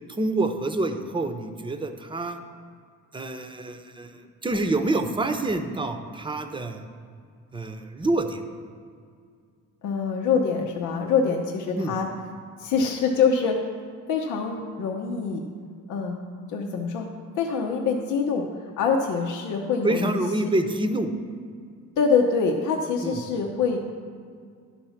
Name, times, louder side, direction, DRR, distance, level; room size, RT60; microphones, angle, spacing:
voice 1, 0.1-2.4 3.1-6.8 7.5-8.4 11.7-11.9 19.8-21.1 23.0-23.4, right 2 dB, 15° right, 7 dB, 0.7 m, -27 dB
voice 2, 9.8-12.1 12.6-13.6 14.1-15.4 15.9-16.2 16.5-17.1 17.3-18.4 18.8-20.5 22.0-23.8, left 5 dB, 85° left, 0 dB, 0.8 m, -25 dB
11.0 x 4.3 x 5.8 m, 2.1 s
cardioid pair, 90°, 30 cm